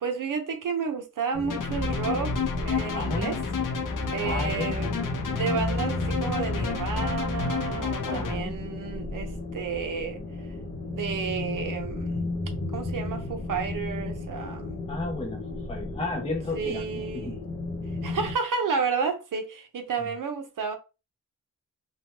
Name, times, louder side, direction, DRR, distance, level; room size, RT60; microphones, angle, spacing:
voice 1, 0.0-2.4 2.6-3.4 4.1-5.0 5.3-10.2 10.8-12.2 12.7-14.8 16.5-17.4 18.0-20.8, right 5 dB, 80° right, 0.7 m, -31 dB
sound 1, 1.3-18.3, left 2 dB, 45° left, 0.8 m, -34 dB
sound 2, 1.5-8.4, left 4 dB, 80° left, 0.6 m, -30 dB
voice 2, 2.9-3.3 4.2-4.7 8.0-8.5 14.9-15.4 15.7-17.3, left 2 dB, 20° left, 0.5 m, -33 dB
3.1 x 2.2 x 2.8 m
wide cardioid pair, 135°, 32 cm